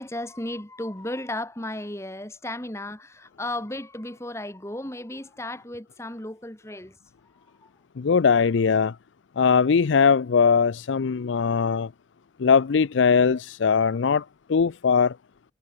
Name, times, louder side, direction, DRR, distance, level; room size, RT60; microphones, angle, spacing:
voice 1, 0.0-7.0 7.4-7.7, left 1 dB, 15° left, 1.9 m, -35 dB
voice 2, 8.0-8.9 9.4-11.9 12.4-14.2 14.5-15.2, left 6 dB, 80° left, 0.5 m, -20 dB
head